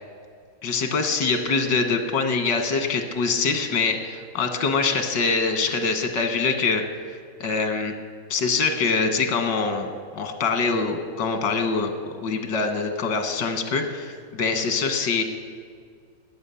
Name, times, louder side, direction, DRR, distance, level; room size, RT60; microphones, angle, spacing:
voice 1, 0.6-6.8 7.4-7.9 8.3-9.9 10.1-15.2, left 4 dB, 90° left, 7 dB, 1.9 m, -24 dB
14.0 x 9.5 x 6.9 m, 2.1 s
omnidirectional pair, 1.9 m